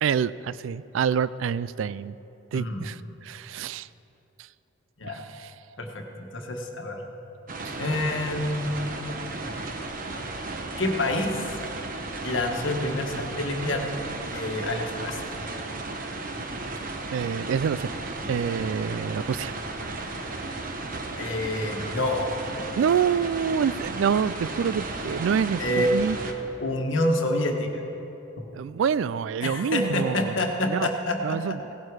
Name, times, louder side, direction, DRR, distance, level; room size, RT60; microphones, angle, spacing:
voice 1, 0.0-2.2 2.5-3.9 5.1-5.5 7.6-7.8 17.1-17.9 18.3-19.5 22.8-26.2 28.5-30.9 31.2-31.9, right 7 dB, 75° right, 18 dB, 0.3 m, -27 dB
voice 2, 2.5-2.8 5.0-5.2 5.8-7.0 7.8-8.7 10.8-11.4 12.2-13.8 14.3-15.2 21.2-22.3 25.6-25.9 26.6-27.7 29.4-31.6, left 1 dB, 75° left, 3 dB, 1.4 m, -27 dB
sound 1, 7.5-26.3, right 2 dB, 45° right, 1.0 m, -34 dB
17.0 x 11.0 x 4.9 m, 3.0 s
head